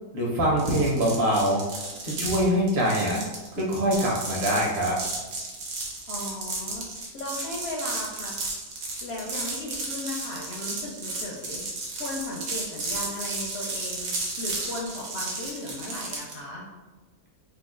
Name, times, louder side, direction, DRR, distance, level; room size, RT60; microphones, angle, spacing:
voice 1, 0.1-1.6 2.0-3.2 3.6-5.0, equal, 45° right, -3 dB, 0.9 m, -24 dB
sound 1, 0.6-16.4, right 3 dB, 75° right, 1.2 m, -33 dB
voice 2, 6.1-8.3 9.0-11.7 12.0-16.7, left 1 dB, 65° left, -3 dB, 0.6 m, -36 dB
3.0 x 2.3 x 3.7 m, 1.2 s
omnidirectional pair, 1.5 m